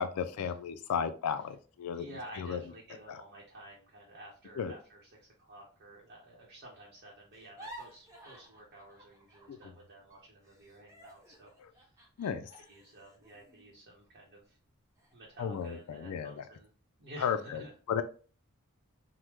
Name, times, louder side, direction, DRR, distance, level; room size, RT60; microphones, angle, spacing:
voice 1, 0.0-2.1 2.4-2.6 3.1-3.2 4.6-4.7 9.5-9.7 11.6-11.7 12.2-12.5 15.4-16.4 17.2-17.6 17.9-18.0, left 7 dB, 80° left, 10 dB, 0.3 m, -34 dB
voice 2, 1.9-5.1 5.4-11.9 12.4-14.6 15.1-16.7 17.0-17.7, right 1 dB, 50° right, -4 dB, 0.8 m, -51 dB
sound 1, 7.3-9.8 10.1-14.5 15.0-15.1 15.5-16.0, right 1 dB, 15° right, 0.6 m, -54 dB
3.4 x 2.1 x 2.9 m, 0.38 s
head